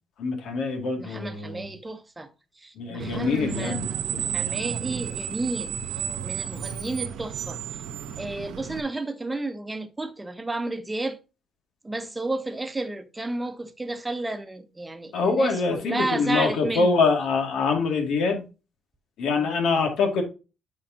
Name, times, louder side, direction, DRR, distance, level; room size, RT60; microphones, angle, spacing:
voice 1, 0.2-1.7 2.8-4.6 15.1-18.4 19.2-20.2, left 4 dB, 80° left, 2.3 m, -25 dB
voice 2, 1.0-2.3 2.6-3.8 4.2-5.8 6.2-7.6 8.2-11.2 11.8-17.1 19.4-19.6, right 2 dB, 15° right, 1.0 m, -32 dB
Screech, 3.0-8.8, right 9 dB, 85° right, 0.9 m, -32 dB
9.2 x 4.9 x 2.8 m
cardioid pair, 90°, 0 cm